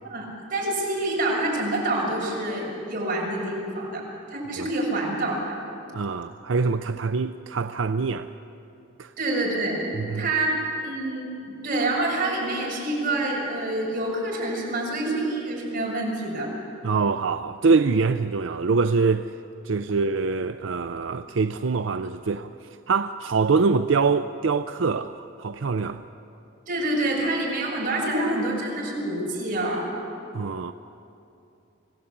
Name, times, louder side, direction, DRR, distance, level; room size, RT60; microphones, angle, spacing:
voice 1, 0.0-4.0 4.3-5.6 9.2-9.8 10.1-10.6 10.8-16.5 26.7-29.9, right 2 dB, 45° right, 7.1 m, -27 dB
voice 2, 5.9-8.3 9.0-9.1 10.0-10.3 16.8-19.3 19.6-22.5 22.9-26.0 30.3-30.7, right 4 dB, 85° right, 0.5 m, -24 dB
26.0 x 17.0 x 8.6 m
head